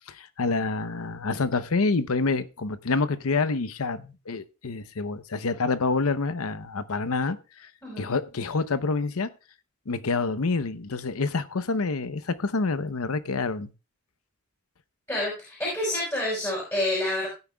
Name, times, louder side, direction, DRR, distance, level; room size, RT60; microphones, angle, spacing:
voice 1, 0.1-7.4 7.6-7.7 8.0-9.3 9.9-13.7, left 3 dB, 90° left, 0.8 m, -27 dB
voice 2, 15.1-17.3, left 1 dB, 15° left, 5.1 m, -28 dB
17.0 x 9.8 x 2.3 m
head